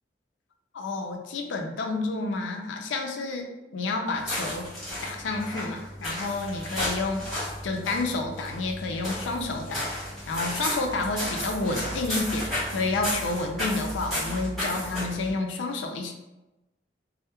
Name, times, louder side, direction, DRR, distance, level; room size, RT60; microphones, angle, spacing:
voice 1, 0.7-3.5 3.7-4.7 5.0-7.3 7.6-9.9 10.3-16.1, left 3 dB, 85° left, 3 dB, 0.4 m, -30 dB
sound 1, 4.1-15.3, left 1 dB, ahead, 0.9 m, -33 dB
2.2 x 2.0 x 2.8 m, 0.99 s
head